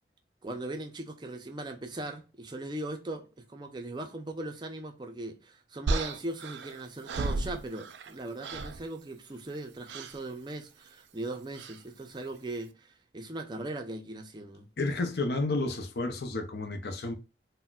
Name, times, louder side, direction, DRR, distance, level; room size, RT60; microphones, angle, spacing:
voice 1, 0.4-14.7, right 2 dB, 25° right, 0.4 m, -39 dB
sound 1, 5.9-8.1 8.4-8.8 9.9-10.2 11.5-11.8, right 3 dB, 85° right, 0.4 m, -34 dB
voice 2, 14.8-17.1, left 2 dB, 60° left, 0.6 m, -31 dB
4.0 x 2.1 x 2.3 m
head